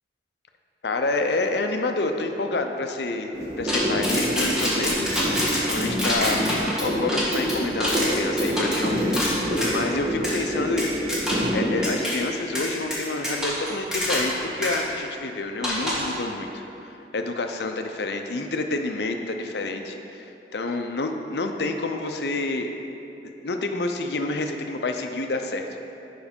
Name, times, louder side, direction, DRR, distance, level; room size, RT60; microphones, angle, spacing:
voice 1, 0.8-3.3 3.6-5.3 5.6-10.9 11.5-22.7 23.2-25.7, left 2 dB, 65° left, 5 dB, 0.6 m, -28 dB
sound 1, 3.3-11.8, equal, 20° right, 1.8 m, -27 dB
sound 2, 3.7-9.8 10.2-10.4 10.8-11.6 11.8-12.2 12.6-14.4 14.6-14.8 15.6-16.1, left 1 dB, 5° right, 1.4 m, -26 dB
7.2 x 5.3 x 5.2 m, 2.9 s
head